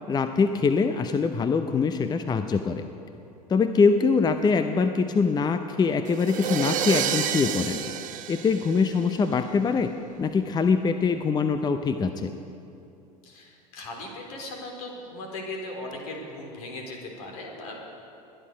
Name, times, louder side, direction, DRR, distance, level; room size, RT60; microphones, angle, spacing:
voice 1, 0.1-2.9 3.5-7.8 8.3-9.9 10.2-12.3, left 5 dB, 20° left, 9 dB, 0.6 m, -23 dB
sound 1, 6.1-9.3, right 10 dB, 40° right, 1.0 m, -30 dB
voice 2, 13.2-17.8, left 2 dB, 65° left, 1 dB, 3.0 m, -38 dB
21.0 x 10.5 x 5.1 m, 2.7 s
figure-of-eight pair, 75°, 20 cm